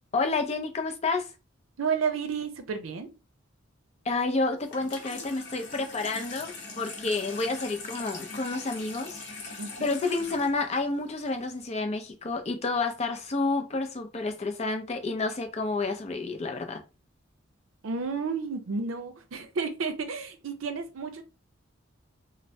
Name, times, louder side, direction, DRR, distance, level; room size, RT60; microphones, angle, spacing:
voice 1, 0.1-1.3 4.1-16.8, left 3 dB, 30° left, 0.5 m, -30 dB
voice 2, 1.8-3.1 9.6-9.9 17.8-21.2, right 5 dB, 80° right, 0.5 m, -31 dB
Water tap faucet / Sink (filling or washing), 4.6-11.6, left 3 dB, 55° left, 0.8 m, -42 dB
3.1 x 2.0 x 2.7 m
head